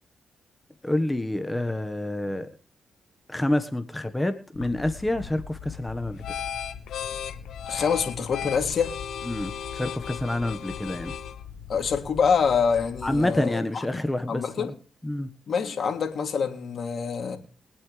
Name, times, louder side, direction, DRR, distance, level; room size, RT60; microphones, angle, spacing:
voice 1, 0.8-2.5 3.3-6.4 9.2-11.1 13.0-14.7 15.0-15.3, left 1 dB, 15° left, 9 dB, 1.5 m, -28 dB
sound 1, 4.5-13.4, left 8 dB, 80° left, 1.4 m, -37 dB
voice 2, 7.7-9.0 11.7-14.0 14.3-14.7 15.5-17.4, left 6 dB, 60° left, 4 dB, 3.0 m, -26 dB
23.5 x 8.6 x 3.4 m, 0.42 s
supercardioid pair, 45°, 0 cm